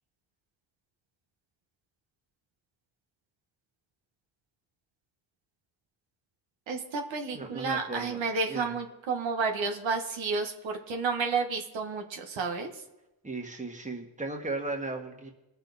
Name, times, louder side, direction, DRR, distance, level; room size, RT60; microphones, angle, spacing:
voice 1, 6.7-12.7, right 4 dB, 75° right, 3 dB, 1.6 m, -31 dB
voice 2, 7.3-8.2 8.5-8.7 13.2-15.3, right 3 dB, 15° right, 3 dB, 1.8 m, -36 dB
19.5 x 6.9 x 4.2 m, 0.96 s
cardioid pair, 85°, 46 cm